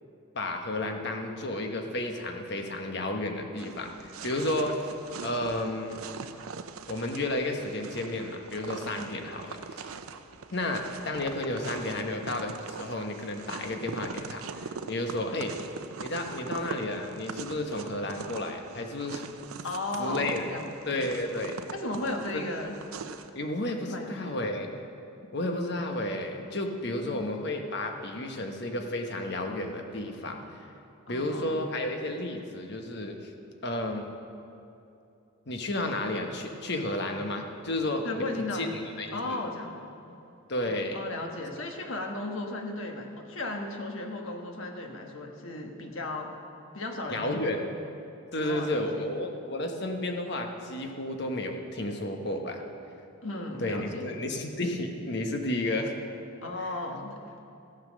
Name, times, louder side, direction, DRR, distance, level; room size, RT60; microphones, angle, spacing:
voice 1, 0.3-4.9 5.2-6.0 6.9-9.9 10.5-15.5 16.0-19.3 20.0-20.4 20.8-21.5 22.3-22.4 23.3-24.7 25.3-30.7 31.1-33.3 33.6-34.1 35.5-38.2 38.5-39.4 40.5-41.0 47.1-47.7 48.3-52.6 53.6-55.9 56.6-56.7, left 1 dB, 50° left, 4 dB, 1.2 m, -32 dB
sound 1, 3.6-23.3, right 5 dB, 85° right, 0.6 m, -42 dB
voice 2, 19.6-20.7 21.7-22.8 23.8-24.4 27.0-27.3 31.1-31.6 38.0-38.7 39.1-40.2 40.9-46.3 46.7-47.5 48.3-49.0 53.2-54.1 56.4-57.4, left 2 dB, 70° left, 3 dB, 1.4 m, -35 dB
15.5 x 7.4 x 6.3 m, 2.7 s
head